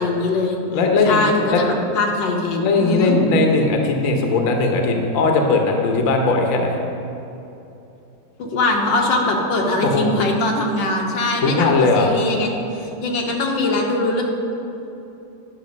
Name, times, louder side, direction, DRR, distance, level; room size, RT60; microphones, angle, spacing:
voice 1, 0.0-0.6 1.1-1.3 1.6-3.2 8.4-14.2, left 2 dB, 80° left, 0 dB, 1.7 m, -21 dB
voice 2, 0.7-1.6 2.6-6.8 9.8-10.1 11.4-12.1, left 3 dB, 55° left, 2 dB, 1.2 m, -18 dB
10.5 x 6.3 x 5.2 m, 2.8 s
omnidirectional pair, 2.0 m